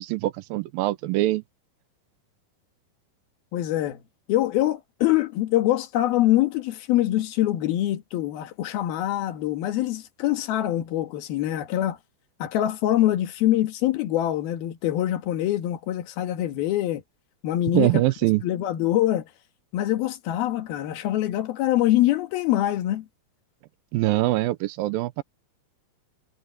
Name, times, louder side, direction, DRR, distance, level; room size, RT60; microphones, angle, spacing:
voice 1, 0.0-1.4 17.7-18.4 23.9-25.2, right 17 dB, 80° right, 2.3 m, -23 dB
voice 2, 3.5-4.0 4.3-12.0 12.4-17.0 17.4-17.9 18.4-19.3 19.7-23.1, left 14 dB, 80° left, 3.5 m, -24 dB
omnidirectional pair, 4.4 m